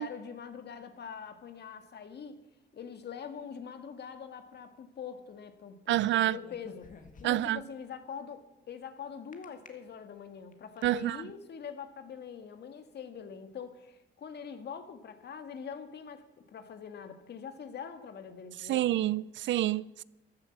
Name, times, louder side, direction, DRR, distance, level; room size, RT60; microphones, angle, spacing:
voice 1, 0.0-2.4 2.7-6.9 7.2-18.9, left 7 dB, 60° left, 1.8 m, -44 dB
voice 2, 5.9-6.4 7.2-7.6 10.8-11.2 18.7-20.0, right 14 dB, 70° right, 0.5 m, -28 dB
sound 1, 6.4-7.6 9.3-9.7 10.3-11.0, left 5 dB, 40° left, 1.9 m, -52 dB
14.5 x 11.5 x 7.3 m
cardioid pair, 90°, 20 cm